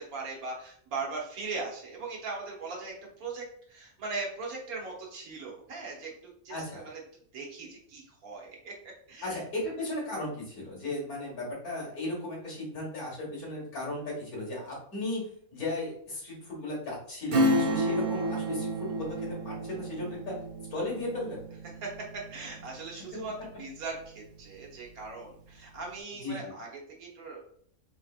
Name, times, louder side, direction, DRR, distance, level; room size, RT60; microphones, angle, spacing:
voice 1, 0.1-6.1 6.4-7.0 7.3-8.7 9.1-9.4 17.7-17.8 21.8-23.3 23.6-26.7 27.0-27.4, right 3 dB, 75° right, -2 dB, 1.5 m, -39 dB
voice 2, 6.5-6.9 9.2-20.3 20.7-21.4 26.2-26.5, left 2 dB, 80° left, -4 dB, 2.1 m, -36 dB
Acoustic guitar / Strum, 17.3-23.5 23.9-24.0, equal, 50° right, 0.6 m, -31 dB
4.5 x 2.9 x 2.4 m, 0.62 s
omnidirectional pair, 1.5 m